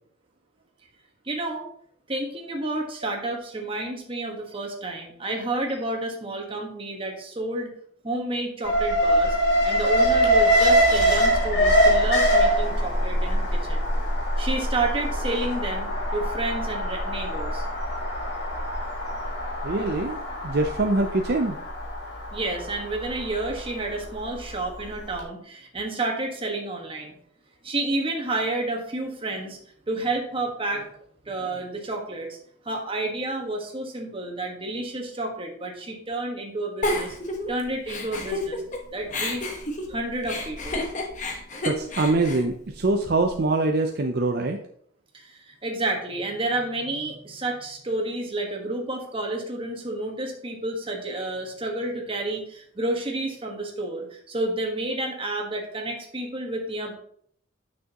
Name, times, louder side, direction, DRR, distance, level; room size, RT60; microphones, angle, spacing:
voice 1, 1.2-1.6 2.1-7.7 8.0-9.4 9.6-13.8 14.4-17.6 22.3-27.1 27.6-29.6 29.9-30.9 31.2-32.4 32.6-37.1 37.5-38.6 38.9-39.5 39.9-40.8 45.1-56.9, right 2 dB, 25° right, 1 dB, 1.4 m, -30 dB
Alarm, 8.6-24.8 25.1-25.2, equal, 55° left, 1.9 m, -23 dB
voice 2, 19.6-21.6 38.6-38.7 41.6-44.6, right 2 dB, 50° right, 4 dB, 0.5 m, -24 dB
Giggle, 36.8-38.8 39.1-43.3, left 1 dB, 40° left, 1.1 m, -30 dB
9.3 x 6.3 x 2.9 m, 0.64 s
head